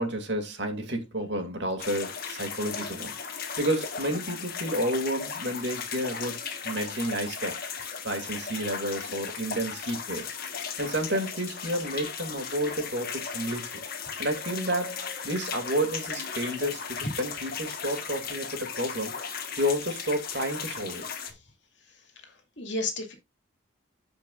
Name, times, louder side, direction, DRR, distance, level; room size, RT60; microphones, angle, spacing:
voice 1, 0.0-3.1 3.6-6.4 6.6-7.6 8.0-10.2 10.8-13.7 14.2-19.1 19.6-21.1, equal, 60° right, 2.5 m, -30 dB
sound 1, 1.8-21.3, left 6 dB, 45° left, 1.5 m, -36 dB
voice 2, 22.2-23.1, left 2 dB, 65° left, 2.4 m, -33 dB
15.0 x 5.2 x 2.5 m
head